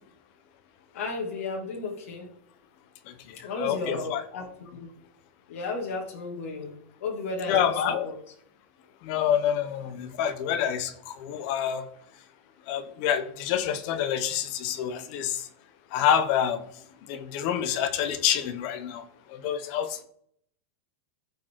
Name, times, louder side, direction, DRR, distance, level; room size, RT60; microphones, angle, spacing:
voice 1, 0.9-2.3 3.4-4.9 5.5-6.7 7.0-8.1, left 3 dB, 75° left, -1 dB, 2.3 m, -34 dB
voice 2, 3.1-4.2 7.5-8.1 9.0-11.9 12.7-15.5 15.9-16.6 17.1-20.0, left 9 dB, 40° left, 10 dB, 1.0 m, -27 dB
15.0 x 5.2 x 3.7 m, 0.68 s
supercardioid pair, 170°, 8 cm